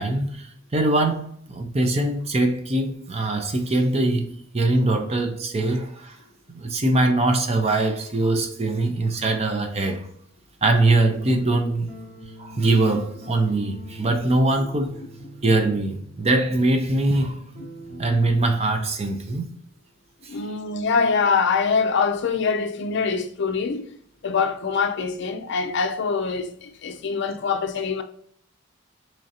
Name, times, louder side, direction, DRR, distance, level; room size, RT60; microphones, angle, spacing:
voice 1, 0.0-6.2 6.5-10.1 10.6-11.9 12.4-15.0 15.4-17.4 18.0-19.5 20.2-20.4, right 2 dB, 30° right, 0.5 m, -22 dB
sound 1, 10.7-18.2, equal, 45° right, 1.1 m, -42 dB
voice 2, 20.3-24.0 24.2-28.0, left 5 dB, 55° left, 0.4 m, -24 dB
3.7 x 3.1 x 2.7 m
head